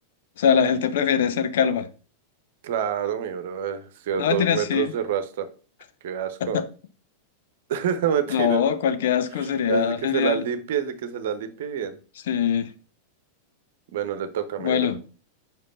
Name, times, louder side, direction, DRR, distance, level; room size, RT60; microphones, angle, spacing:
voice 1, 0.4-1.9 4.2-4.9 6.4-6.6 8.3-10.4 12.3-12.7 14.6-15.0, left 8 dB, 55° left, 0.7 m, -22 dB
voice 2, 2.6-5.5 6.0-6.6 7.7-8.6 9.4-12.0 13.9-14.9, right 8 dB, 55° right, 1.0 m, -27 dB
5.4 x 5.2 x 5.5 m
figure-of-eight pair, 90°, 0 cm